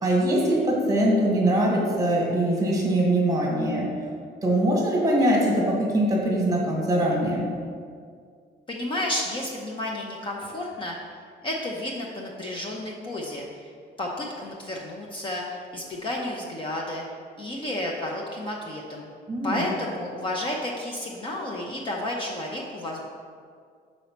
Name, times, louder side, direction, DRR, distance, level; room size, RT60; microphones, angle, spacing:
voice 1, 0.0-3.9 4.4-7.5 19.3-19.6, right 1 dB, 20° right, -2 dB, 1.2 m, -22 dB
voice 2, 8.7-11.0 11.4-13.7 14.0-17.0 17.4-19.1 19.4-23.1, left 1 dB, 30° left, -2 dB, 0.6 m, -31 dB
5.4 x 4.1 x 5.8 m, 2.1 s
cardioid pair, 165°, 18 cm